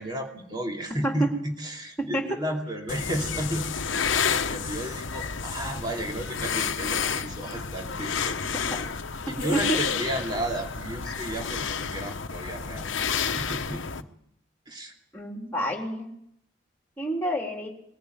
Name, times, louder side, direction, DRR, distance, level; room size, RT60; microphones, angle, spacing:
voice 1, 0.0-3.7 4.1-8.4 9.3-14.1 14.7-14.9, right 1 dB, 20° right, 1 dB, 2.7 m, -33 dB
voice 2, 1.0-1.3 2.0-2.4 8.7-8.8 9.3-9.8 15.1-16.1 17.0-17.7, right 1 dB, 10° left, 1 dB, 3.7 m, -28 dB
sound 1, 2.9-14.0, left 6 dB, 75° left, 1.1 m, -30 dB
21.5 x 14.5 x 9.3 m, 0.73 s
head